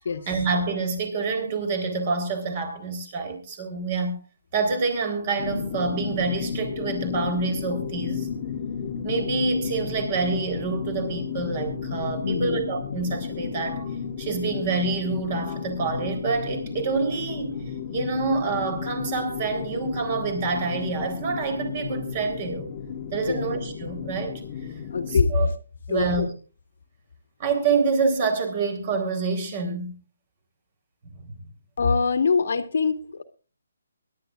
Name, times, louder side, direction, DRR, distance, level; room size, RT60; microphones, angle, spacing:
voice 1, 0.3-4.2 4.5-8.3 9.0-22.7 23.1-24.4 25.1-25.5 25.9-26.3 27.4-29.9 31.2-31.4, right 4 dB, 30° right, 6 dB, 3.9 m, -27 dB
sound 1, 5.4-25.2, left 7 dB, 30° left, 1.5 m, -33 dB
voice 2, 12.2-12.6 23.3-23.4 24.9-25.3 25.9-26.3 31.8-33.2, left 5 dB, 60° left, 8 dB, 1.8 m, -23 dB
23.0 x 11.5 x 2.5 m, 0.36 s
hypercardioid pair, 165°, 0 cm